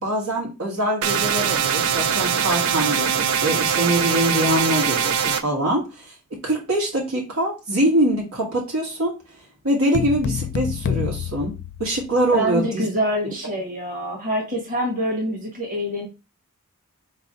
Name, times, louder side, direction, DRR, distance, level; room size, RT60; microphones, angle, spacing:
voice 1, 0.0-9.1 9.6-11.5 11.8-12.8, right 1 dB, 75° right, -2 dB, 1.8 m, -23 dB
sound 1, 1.0-5.4, right 7 dB, 90° right, 0.5 m, -22 dB
sound 2, 9.9-12.5, left 8 dB, 50° left, 0.3 m, -28 dB
voice 2, 12.3-16.1, equal, 40° right, -1 dB, 1.7 m, -25 dB
4.1 x 3.3 x 3.8 m, 0.28 s
head